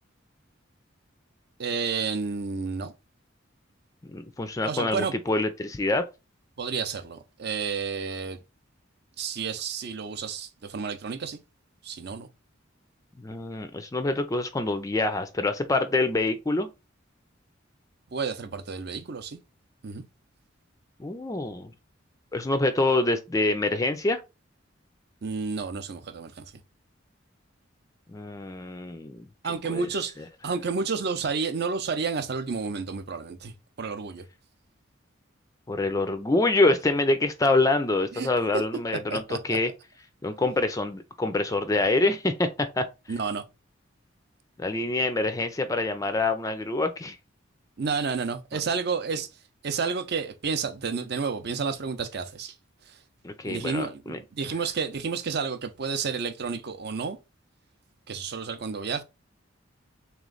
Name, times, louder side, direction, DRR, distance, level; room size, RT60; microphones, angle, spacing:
voice 1, 1.6-2.9 4.6-5.1 6.6-8.4 9.2-11.4 11.8-12.3 18.1-19.4 19.8-20.0 25.2-26.5 29.4-30.2 30.4-33.5 33.8-34.2 38.1-38.3 39.1-39.6 43.1-43.4 47.8-49.3 49.6-52.5 52.9-53.0 53.5-57.2 58.1-59.0, right 5 dB, 55° right, 0.6 m, -30 dB
voice 2, 4.0-6.1 13.2-16.7 21.0-21.7 22.3-24.2 28.1-29.3 29.6-29.9 35.7-39.7 40.2-42.9 44.6-47.2 53.2-54.2, left 2 dB, 15° left, 0.4 m, -26 dB
3.3 x 3.1 x 3.8 m
head